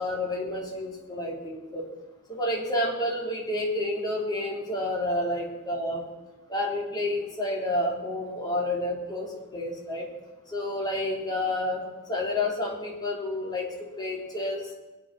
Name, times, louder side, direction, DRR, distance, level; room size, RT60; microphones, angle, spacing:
voice 1, 0.0-1.9 2.3-6.0 6.5-10.1 10.5-11.8 12.1-13.7 14.0-14.6, left 1 dB, 20° left, -3 dB, 4.0 m, -29 dB
22.0 x 8.9 x 6.2 m, 1.1 s
head